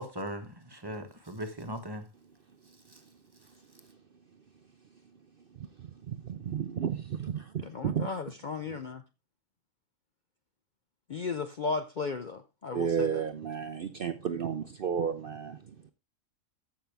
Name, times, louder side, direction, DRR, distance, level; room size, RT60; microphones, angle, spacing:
voice 1, 0.0-2.0 2.9-3.0, right 1 dB, 20° right, 1.0 m, -39 dB
voice 2, 6.1-8.1 12.7-15.6, right 7 dB, 55° right, 0.7 m, -32 dB
voice 3, 7.6-9.0 11.1-13.3, left 4 dB, 50° left, 0.6 m, -35 dB
14.0 x 5.6 x 3.4 m
omnidirectional pair, 1.4 m